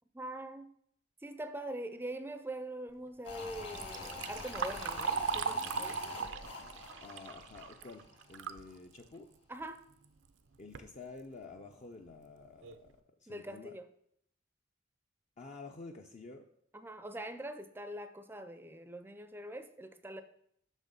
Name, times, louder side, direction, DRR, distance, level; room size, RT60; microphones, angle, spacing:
voice 1, 0.1-0.7 1.2-6.0 9.5-9.8 13.3-13.8 16.7-20.2, right 1 dB, 10° right, 10 dB, 0.5 m, -43 dB
sound 1, 3.2-8.4 8.7-8.8, left 3 dB, 60° left, 1.8 m, -46 dB
Liquid, 3.5-8.6 9.0-9.1 10.0-10.1 10.5-10.9 11.5-11.6 12.1-12.2 12.6-12.9, right 5 dB, 65° right, 0.5 m, -38 dB
voice 2, 7.0-9.3 10.6-13.8 15.4-16.5, left 3 dB, 40° left, 3 dB, 0.5 m, -50 dB
6.3 x 6.1 x 5.2 m, 0.70 s
head